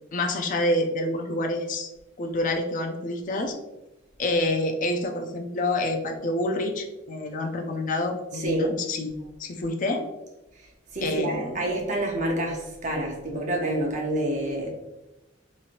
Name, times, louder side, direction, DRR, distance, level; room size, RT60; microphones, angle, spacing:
voice 1, 0.1-1.9 2.2-3.6 4.2-9.1 9.4-10.0 11.0-11.6, left 1 dB, 40° left, 4 dB, 0.4 m, -27 dB
voice 2, 8.3-8.7 10.9-14.7, right 1 dB, 40° right, 0 dB, 0.7 m, -28 dB
3.1 x 2.8 x 2.5 m, 0.98 s
head